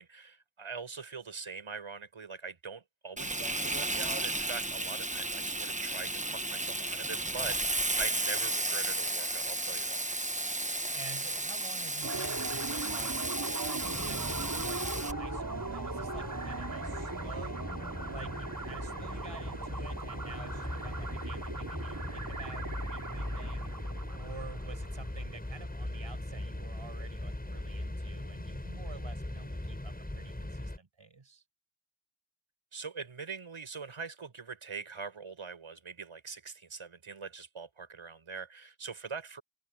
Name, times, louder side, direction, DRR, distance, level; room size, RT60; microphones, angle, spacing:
voice 1, 0.0-10.1 32.7-39.4, right 5 dB, 85° right, 7.9 m, -43 dB
Frying (food), 3.2-15.1, right 2 dB, 15° right, 1.3 m, -33 dB
voice 2, 10.9-17.7 18.1-23.7 24.1-31.4, right 4 dB, 70° right, 6.2 m, -49 dB
sound 1, 12.0-25.2, right 3 dB, 40° right, 3.7 m, -40 dB
sound 2, 13.8-30.8, left 1 dB, 20° left, 7.6 m, -40 dB
open air
wide cardioid pair, 75°, 48 cm